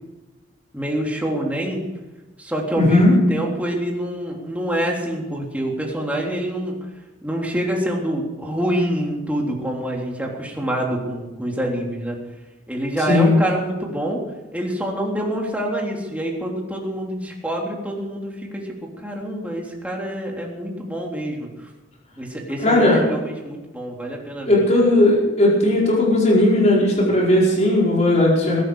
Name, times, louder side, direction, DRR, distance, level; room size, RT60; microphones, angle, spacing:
voice 1, 0.7-1.8 2.4-6.8 7.2-12.2 12.7-14.2 14.5-21.7 22.2-24.6, right 1 dB, 10° right, -1 dB, 3.5 m, -26 dB
voice 2, 2.8-3.1 13.1-13.4 22.6-23.0 24.5-28.6, left 1 dB, 35° left, -4 dB, 4.8 m, -16 dB
21.0 x 12.5 x 5.0 m, 1.1 s
head